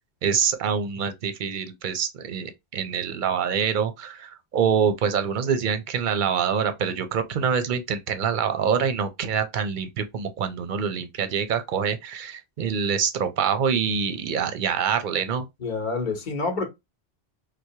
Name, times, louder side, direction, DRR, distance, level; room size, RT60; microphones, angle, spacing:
voice 1, 0.2-15.5, right 7 dB, 55° right, 0.7 m, -25 dB
voice 2, 15.6-16.7, left 3 dB, 50° left, 1.0 m, -27 dB
4.5 x 2.1 x 2.7 m
omnidirectional pair, 1.1 m